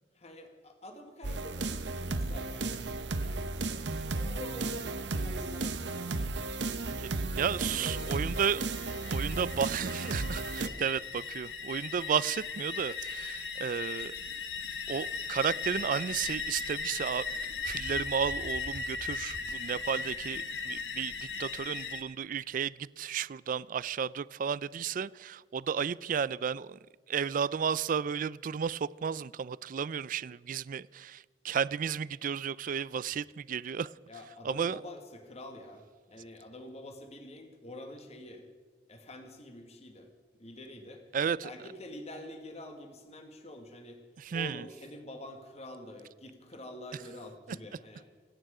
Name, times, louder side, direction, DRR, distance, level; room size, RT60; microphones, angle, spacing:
voice 1, 0.1-2.7 4.1-6.4 7.5-8.2 34.1-38.4 38.9-40.1 40.4-41.0 41.4-44.0 44.3-48.1, left 1 dB, 40° left, 1.5 m, -47 dB
sound 1, 1.2-10.7, right 3 dB, 80° right, 0.9 m, -34 dB
voice 2, 7.4-8.6 9.1-14.1 14.9-17.3 17.6-21.1 21.4-26.8 27.1-33.9 34.4-34.8 41.1-41.5 44.2-44.6, right 7 dB, 50° right, 0.4 m, -33 dB
sound 2, 7.7-22.0, left 4 dB, 80° left, 1.4 m, -38 dB
26.0 x 9.0 x 4.9 m
head